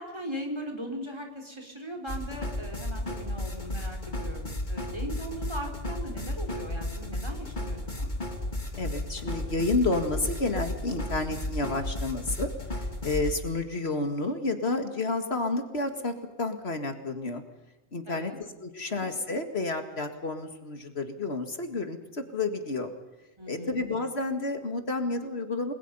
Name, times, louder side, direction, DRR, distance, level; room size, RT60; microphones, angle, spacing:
voice 1, 0.0-8.1 18.1-18.4 18.8-19.1 23.4-23.9, equal, 25° right, 3 dB, 4.5 m, -39 dB
sound 1, 2.1-13.3, left 1 dB, 40° left, 3.1 m, -34 dB
voice 2, 8.7-12.5 12.8-17.4 17.9-18.3 18.6-22.9 23.5-25.7, left 3 dB, 65° left, 6 dB, 2.2 m, -30 dB
30.0 x 21.0 x 5.5 m, 1.0 s
omnidirectional pair, 1.2 m